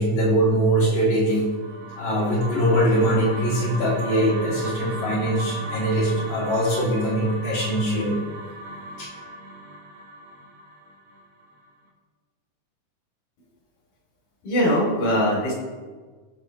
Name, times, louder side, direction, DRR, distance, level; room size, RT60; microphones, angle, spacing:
voice 1, 0.0-1.5 2.0-8.2 9.0-9.1, right 1 dB, 50° left, -7 dB, 4.6 m, -22 dB
sound 1, 1.3-11.6, right 1 dB, 60° right, 2.7 m, -37 dB
voice 2, 14.4-15.5, equal, 70° left, -3 dB, 4.4 m, -21 dB
19.0 x 6.8 x 3.1 m, 1.4 s
omnidirectional pair, 3.6 m